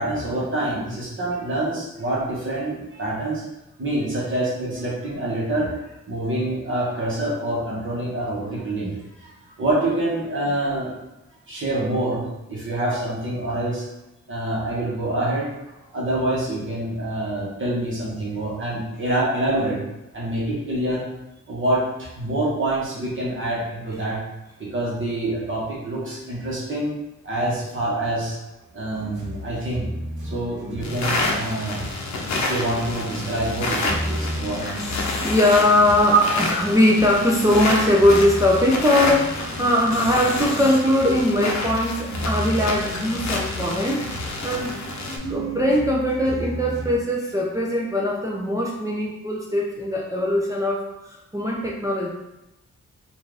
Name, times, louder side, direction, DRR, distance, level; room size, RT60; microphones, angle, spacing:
voice 1, 0.0-3.4 3.8-5.7 6.1-9.3 9.6-11.0 11.5-13.9 14.3-15.5 15.9-19.8 20.1-21.0 21.5-24.2 24.6-26.9 27.2-28.4 28.7-29.9 30.2-31.8 32.1-35.3 35.9-36.2, right 1 dB, 40° right, -6 dB, 1.2 m, -26 dB
sound 1, 28.9-47.0, equal, 90° right, 1.0 m, -34 dB
sound 2, 30.8-45.2, left 2 dB, 70° left, 0.7 m, -29 dB
voice 2, 35.2-44.8 45.3-52.1, left 1 dB, 10° right, -3 dB, 0.4 m, -21 dB
4.3 x 2.5 x 3.3 m, 0.94 s
wide cardioid pair, 135°, 29 cm